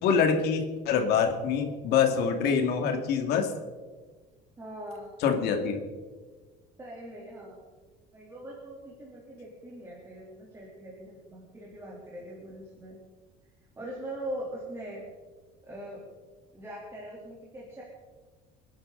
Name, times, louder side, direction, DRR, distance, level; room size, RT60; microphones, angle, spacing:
voice 1, 0.0-3.5 5.2-5.8, left 6 dB, 65° left, 4 dB, 2.6 m, -25 dB
voice 2, 4.6-5.2 6.8-7.7 8.1-13.0 13.8-15.0 15.6-16.0 16.5-17.8, right 1 dB, 15° right, -5 dB, 3.6 m, -41 dB
29.5 x 10.5 x 4.1 m, 1.4 s
cardioid pair, 160°, 18 cm